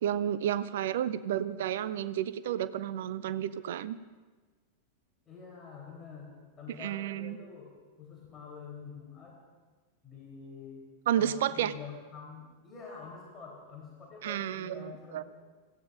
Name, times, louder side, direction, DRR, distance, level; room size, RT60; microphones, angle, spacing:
voice 1, 0.0-4.0 6.8-7.4 11.1-11.7 14.2-15.2, right 10 dB, 55° right, 16 dB, 0.6 m, -31 dB
voice 2, 5.3-7.7 8.0-9.4 10.0-10.8 11.2-15.3, left 5 dB, 20° left, -3 dB, 3.6 m, -47 dB
24.5 x 17.0 x 2.6 m, 1.3 s
figure-of-eight pair, 90°, 0 cm